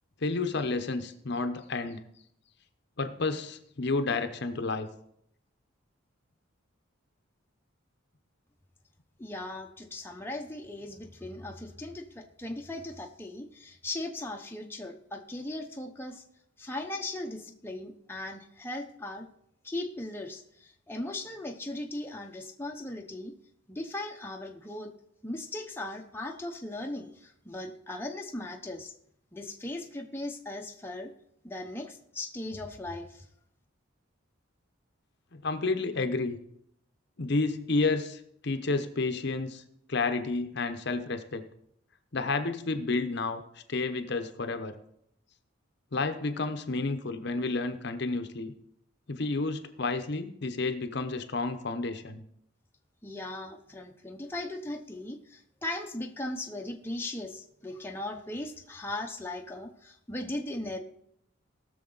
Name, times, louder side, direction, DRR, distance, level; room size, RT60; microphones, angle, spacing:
voice 1, 0.2-2.0 3.0-4.9 35.3-36.4 37.2-39.6 39.9-41.4 42.1-43.4 43.7-44.8 45.9-48.5 49.1-52.2, left 3 dB, 55° left, 8 dB, 0.8 m, -30 dB
voice 2, 9.2-16.2 16.6-19.3 19.6-23.3 23.7-24.9 25.2-28.9 29.3-31.1 31.4-33.3 53.0-60.8, left 1 dB, 10° left, 2 dB, 0.8 m, -38 dB
18.0 x 6.7 x 3.9 m, 0.72 s
head